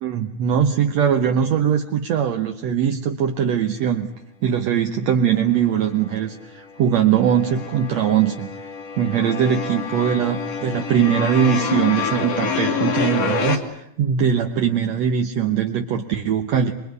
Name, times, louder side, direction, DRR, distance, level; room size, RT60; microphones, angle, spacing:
voice 1, 0.0-4.1 4.4-8.5 9.0-16.7, right 8 dB, 65° right, 4 dB, 2.3 m, -21 dB
sound 1, 5.3-6.1 6.4-13.6, left 5 dB, 55° left, 3.2 m, -27 dB
26.5 x 22.0 x 9.6 m, 0.77 s
omnidirectional pair, 3.5 m